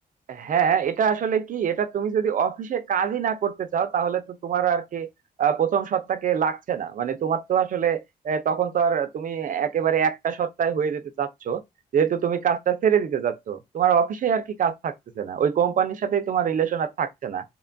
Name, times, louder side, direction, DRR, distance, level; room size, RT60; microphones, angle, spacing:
voice 1, 0.3-5.1 5.4-11.6 11.9-17.4, right 8 dB, 50° right, 0.5 m, -24 dB
2.8 x 2.2 x 2.5 m
cardioid pair, 85°, 17 cm